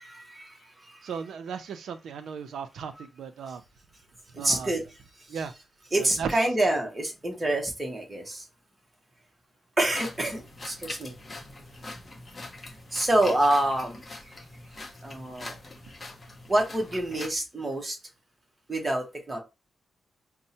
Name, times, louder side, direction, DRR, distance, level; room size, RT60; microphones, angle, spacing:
voice 1, 0.0-1.1 4.3-4.8 5.2-5.4 5.9-8.5 9.8-11.1 11.4-11.5 12.3-14.3 15.0-15.6 16.5-18.0 18.7-19.4, right 1 dB, 15° right, 0.9 m, -27 dB
voice 2, 1.0-3.6 4.3-4.7 5.3-5.5 6.0-6.4, right 6 dB, 80° right, 0.4 m, -36 dB
sound 1, 9.8-17.3, left 2 dB, 25° left, 0.6 m, -43 dB
5.3 x 2.1 x 2.8 m
wide cardioid pair, 165°, 0 cm